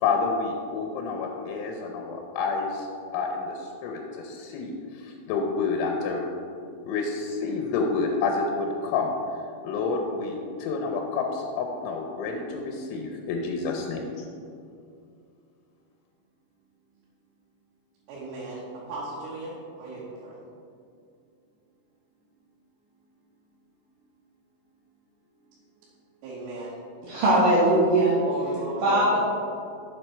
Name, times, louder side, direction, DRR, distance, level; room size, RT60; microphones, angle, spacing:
voice 1, 0.0-6.3 6.9-9.1 9.6-14.3, left 4 dB, 80° left, 2 dB, 3.1 m, -29 dB
voice 2, 18.1-20.4 26.2-26.8 27.3-27.4 28.1-29.1, right 2 dB, 90° right, -7 dB, 3.8 m, -36 dB
voice 3, 27.0-28.1 28.8-29.2, right 1 dB, 65° right, -7 dB, 2.3 m, -20 dB
7.7 x 7.6 x 4.4 m, 2.5 s
omnidirectional pair, 5.5 m